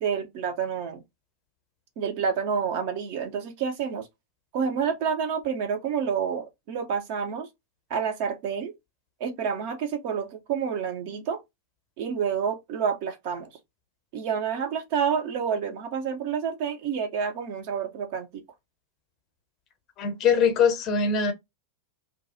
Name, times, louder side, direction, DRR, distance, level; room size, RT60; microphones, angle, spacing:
voice 1, 0.0-1.0 2.0-4.1 4.5-7.5 7.9-8.7 9.2-11.4 12.0-13.5 14.1-18.4, right 7 dB, 50° right, 0.8 m, -29 dB
voice 2, 20.0-21.3, left 6 dB, 35° left, 0.8 m, -22 dB
2.5 x 2.3 x 4.0 m
figure-of-eight pair, 90°, 0 cm